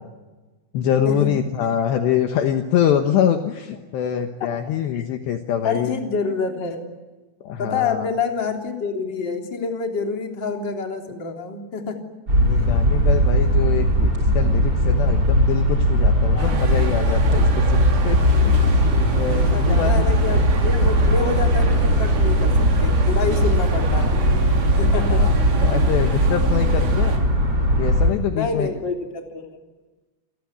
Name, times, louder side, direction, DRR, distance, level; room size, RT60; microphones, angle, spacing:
voice 1, 0.7-5.9 7.4-8.1 12.5-18.5 18.8-20.1 24.7-27.2 27.8-28.7, left 9 dB, 70° left, 6 dB, 3.1 m, -24 dB
voice 2, 5.6-6.9 7.6-12.0 16.3-16.6 17.5-17.6 19.5-24.2 24.7-25.2 28.3-29.5, left 4 dB, 25° left, 3 dB, 3.2 m, -27 dB
sound 1, 12.3-28.1, equal, 20° right, 6.1 m, -18 dB
sound 2, 16.4-27.2, right 4 dB, 60° right, 5.1 m, -31 dB
28.0 x 20.0 x 9.6 m, 1.2 s
omnidirectional pair, 5.8 m